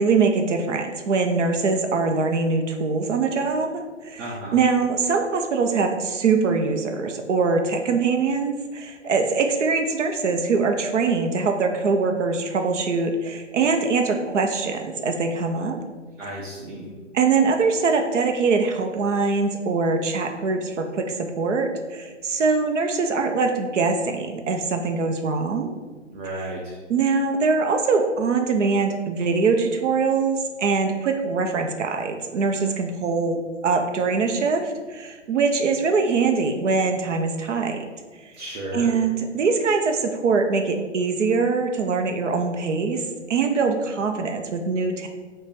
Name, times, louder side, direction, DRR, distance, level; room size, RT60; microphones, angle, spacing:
voice 1, 0.0-15.8 17.1-25.7 26.9-37.9 38.2-38.3 38.7-43.0 43.3-45.1, right 4 dB, 75° right, 5 dB, 0.6 m, -23 dB
voice 2, 4.2-4.6 16.2-16.9 26.1-26.8 38.4-38.9, right 1 dB, 55° right, -4 dB, 0.9 m, -33 dB
6.4 x 2.2 x 3.3 m, 1.4 s
hypercardioid pair, 145°, 36 cm